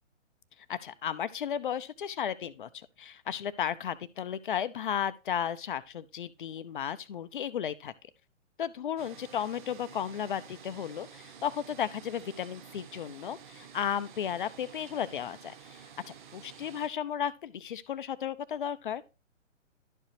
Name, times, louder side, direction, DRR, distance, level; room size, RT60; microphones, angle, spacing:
voice 1, 0.7-7.9 8.6-19.0, left 9 dB, 40° left, 0.5 m, -34 dB
sound 1, 9.0-16.9, right 7 dB, 40° right, 0.8 m, -51 dB
11.5 x 4.8 x 3.1 m
figure-of-eight pair, 130°, 38 cm